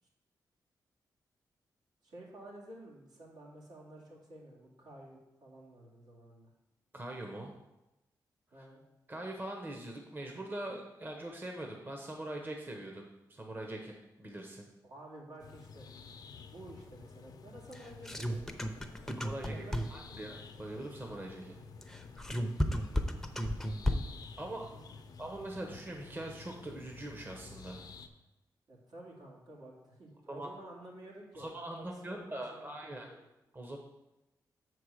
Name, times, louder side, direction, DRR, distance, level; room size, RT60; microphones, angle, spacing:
voice 1, 2.0-6.5 8.5-8.8 14.8-16.0 16.5-20.2 24.4-25.2 28.7-33.2, right 1 dB, 75° right, -4 dB, 2.4 m, -52 dB
voice 2, 6.9-7.5 9.1-14.7 19.2-19.6 19.9-21.6 24.4-24.7 25.2-27.8 30.3-30.5 31.3-33.1 33.5-33.8, right 1 dB, 30° right, 2 dB, 1.0 m, -42 dB
sound 1, 15.4-28.1, left 5 dB, 65° left, 0.6 m, -51 dB
Beat toungy, 17.7-20.2 21.8-24.3, equal, 5° left, 0.7 m, -33 dB
6.5 x 4.6 x 6.4 m, 0.96 s
cardioid pair, 100°, 7 cm